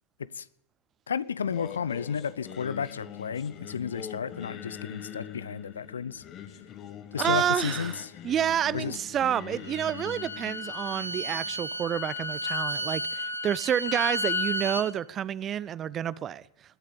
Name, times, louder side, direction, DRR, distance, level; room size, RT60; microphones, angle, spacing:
voice 1, 1.1-6.2 7.1-8.1 8.7-9.0, left 7 dB, 70° left, 0.5 m, -32 dB
Singing, 1.4-12.6, left 9 dB, 30° left, 1.2 m, -44 dB
voice 2, 7.2-8.0 8.2-16.4, right 10 dB, 25° right, 0.4 m, -29 dB
Bowed string instrument, 9.5-14.9, left 1 dB, 90° left, 1.4 m, -32 dB
20.5 x 7.4 x 6.7 m
figure-of-eight pair, 90°, 0 cm